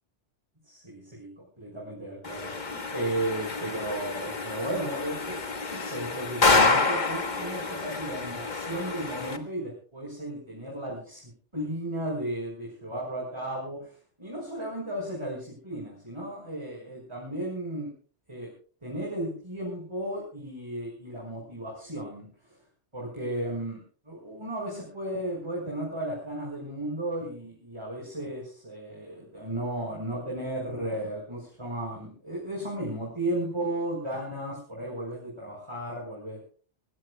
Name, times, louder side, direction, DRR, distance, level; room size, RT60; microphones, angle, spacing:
voice 1, 0.7-1.3 1.6-5.4 5.7-13.9 14.2-17.9 18.3-18.5 18.8-22.6 22.9-36.4, right 1 dB, 25° right, -3 dB, 5.5 m, -34 dB
sound 1, 2.2-9.4, left 3 dB, 40° left, 1.5 m, -28 dB
25.5 x 16.0 x 2.3 m, 0.41 s
omnidirectional pair, 1.2 m